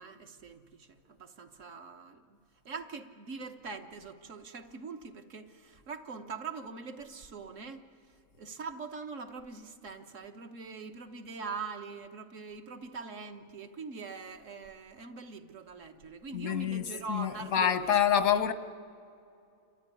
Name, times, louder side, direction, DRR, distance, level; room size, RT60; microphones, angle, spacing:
voice 1, 0.0-2.4 2.6-7.9 8.4-18.0 18.3-18.4, right 4 dB, 65° right, 6 dB, 1.5 m, -43 dB
voice 2, 16.3-18.5, left 9 dB, 90° left, 11 dB, 1.4 m, -27 dB
29.0 x 13.5 x 9.8 m, 2.5 s
omnidirectional pair, 1.4 m